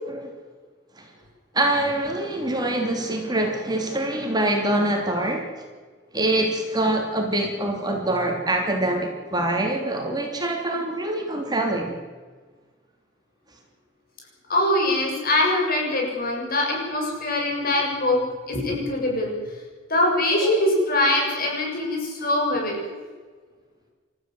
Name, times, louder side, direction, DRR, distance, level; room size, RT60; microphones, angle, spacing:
voice 1, 1.5-5.6 6.1-12.0, right 1 dB, 20° right, 2 dB, 3.2 m, -24 dB
voice 2, 14.5-19.3 19.9-23.0, left 1 dB, 50° left, 0 dB, 7.0 m, -23 dB
29.0 x 14.5 x 7.9 m, 1.5 s
head